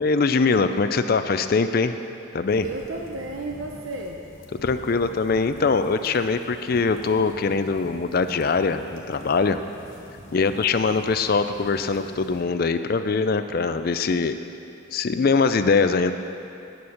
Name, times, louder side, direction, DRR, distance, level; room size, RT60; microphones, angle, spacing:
voice 1, 0.0-2.0 2.3-2.7 4.6-9.6 10.3-14.4 14.9-16.1, left 4 dB, 45° left, 10 dB, 0.4 m, -22 dB
sound 1, 2.5-12.4, equal, 70° left, 1.4 m, -45 dB
voice 2, 2.6-4.2 10.3-10.7, right 2 dB, 80° right, 0 dB, 0.7 m, -34 dB
10.5 x 7.0 x 6.4 m, 2.6 s
head